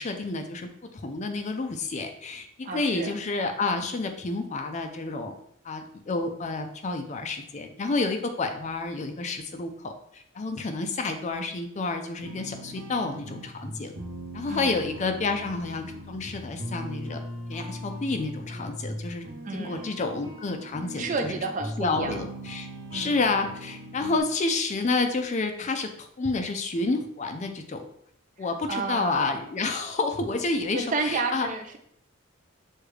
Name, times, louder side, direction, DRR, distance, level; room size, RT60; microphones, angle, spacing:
voice 1, 0.0-5.3 5.6-13.9 14.3-17.2 17.5-19.2 19.5-21.4 21.8-27.8 28.4-31.5, left 3 dB, 35° left, 6 dB, 0.4 m, -29 dB
voice 2, 2.6-3.1 14.5-14.8 19.4-19.9 21.0-22.2 22.9-23.2 28.4-29.4 30.7-31.8, right 3 dB, 35° right, 6 dB, 0.4 m, -31 dB
sound 1, 12.2-24.2, equal, 60° right, 0.9 m, -39 dB
6.5 x 2.3 x 3.1 m, 0.70 s
head